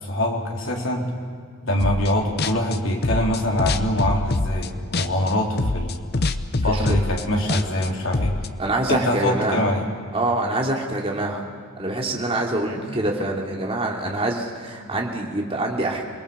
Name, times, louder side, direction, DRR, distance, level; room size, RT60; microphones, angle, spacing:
voice 1, 0.0-1.1 1.6-6.0 6.6-8.4 8.9-9.9 12.7-12.9, left 1 dB, 65° left, 0 dB, 3.6 m, -24 dB
sound 1, 1.8-2.1 2.4-5.3 5.6-8.5, left 2 dB, 50° left, 0.8 m, -25 dB
voice 2, 6.6-7.0 7.5-7.6 8.6-9.6 10.1-11.4 11.8-16.0, right 1 dB, 25° right, 0 dB, 2.9 m, -25 dB
28.0 x 20.0 x 6.9 m, 2.1 s
head